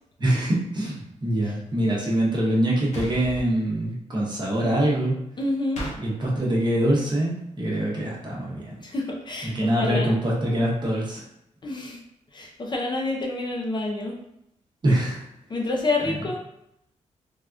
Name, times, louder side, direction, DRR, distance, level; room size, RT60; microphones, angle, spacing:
voice 1, 0.2-5.2 6.0-8.7 9.4-11.3 14.8-15.2 16.1-16.2, right 1 dB, 35° right, -4 dB, 0.9 m, -24 dB
sound 1, 2.9-3.5 5.8-6.0, equal, 70° left, 0.8 m, -33 dB
voice 2, 5.4-5.8 8.8-10.1 11.6-12.0 12.3-14.2 15.5-16.4, left 2 dB, 35° left, 0 dB, 0.5 m, -28 dB
3.4 x 2.3 x 2.5 m, 0.78 s
cardioid pair, 105°, 13 cm